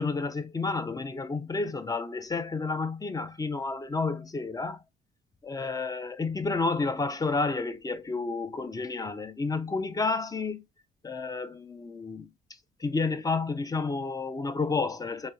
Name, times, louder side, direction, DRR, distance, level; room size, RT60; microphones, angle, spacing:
voice 1, 0.0-4.8 5.4-10.6 11.0-12.3 12.8-15.3, left 3 dB, 20° left, 0.4 m, -30 dB
4.1 x 3.0 x 2.3 m
cardioid pair, 90°, 20 cm